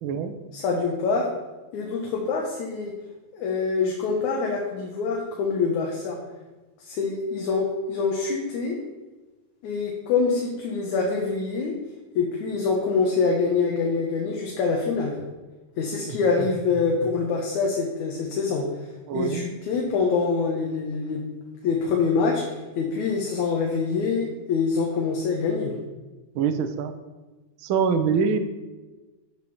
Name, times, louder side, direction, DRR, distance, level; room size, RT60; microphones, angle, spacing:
voice 1, 0.0-0.3 16.1-16.5 19.1-19.5 26.3-26.9 27.6-28.4, right 6 dB, 70° right, 8 dB, 1.2 m, -24 dB
voice 2, 0.5-1.3 1.7-2.9 3.3-6.2 6.8-8.8 9.6-11.8 12.1-15.1 15.8-18.7 19.1-21.2 21.6-25.7, left 4 dB, 80° left, 0 dB, 2.7 m, -25 dB
8.3 x 7.6 x 6.9 m, 1.2 s
omnidirectional pair, 3.3 m